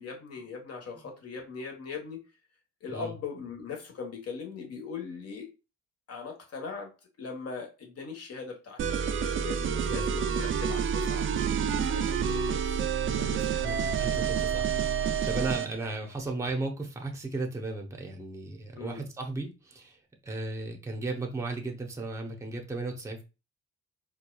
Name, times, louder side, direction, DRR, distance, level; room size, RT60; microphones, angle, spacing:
voice 1, 0.0-2.2 2.8-5.5 6.1-6.9 7.2-8.8 9.1-11.3 11.8-12.8 13.2-14.2 18.8-19.0, left 5 dB, 55° left, 1.2 m, -40 dB
sound 1, 8.8-15.7, right 7 dB, 45° right, 0.4 m, -28 dB
voice 2, 13.6-23.2, right 2 dB, 10° right, 0.7 m, -36 dB
4.4 x 2.3 x 2.2 m
cardioid pair, 90°, 30 cm